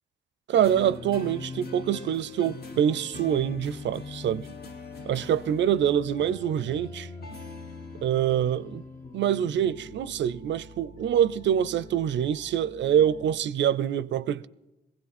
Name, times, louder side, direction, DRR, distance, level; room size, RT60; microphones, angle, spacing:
sound 1, 0.5-13.4, left 3 dB, 60° left, 1.3 m, -42 dB
voice 1, 0.5-4.5 5.1-7.1 8.0-8.8 9.1-14.5, right 9 dB, 80° right, 0.4 m, -25 dB
19.5 x 16.0 x 4.2 m
cardioid pair, 55°, 18 cm